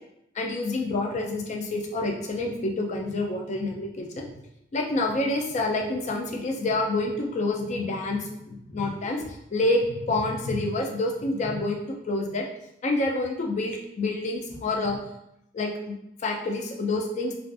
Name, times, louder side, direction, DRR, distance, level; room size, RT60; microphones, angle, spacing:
voice 1, 0.4-4.3 4.7-9.2 9.5-11.8 12.0-12.5 12.8-15.0 15.5-15.9 16.2-17.3, left 2 dB, 35° left, 1 dB, 0.3 m, -27 dB
2.4 x 2.4 x 2.3 m, 0.81 s
head